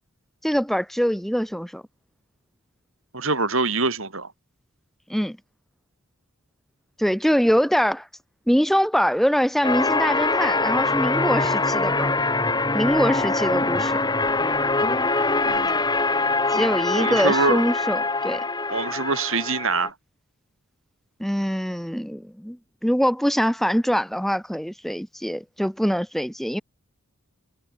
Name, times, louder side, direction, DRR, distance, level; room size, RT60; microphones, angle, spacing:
voice 1, 0.4-1.8 5.1-5.4 7.0-8.1 8.5-12.1 12.7-14.0 16.5-18.4 21.2-26.6, equal, ahead, 1.9 m, -23 dB
voice 2, 3.1-4.3 15.4-15.8 17.0-17.6 18.7-19.9, right 3 dB, 65° right, 5.0 m, -24 dB
sound 1, 9.6-19.9, left 3 dB, 20° left, 4.1 m, -23 dB
head